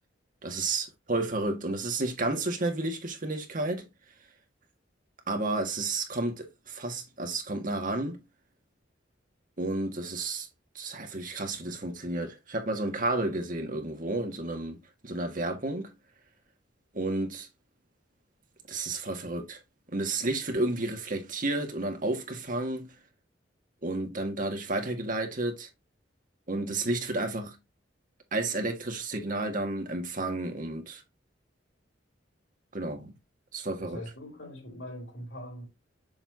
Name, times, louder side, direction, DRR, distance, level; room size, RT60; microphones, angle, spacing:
voice 1, 0.4-3.9 5.3-8.2 9.6-10.5 10.8-15.9 16.9-17.5 18.7-19.6 19.9-23.0 23.8-25.7 26.5-27.6 28.3-31.0 32.7-33.2 33.5-34.0, right 2 dB, 50° right, 1.8 m, -31 dB
voice 2, 33.8-35.7, left 1 dB, 75° left, 3.3 m, -42 dB
7.2 x 5.6 x 2.7 m
head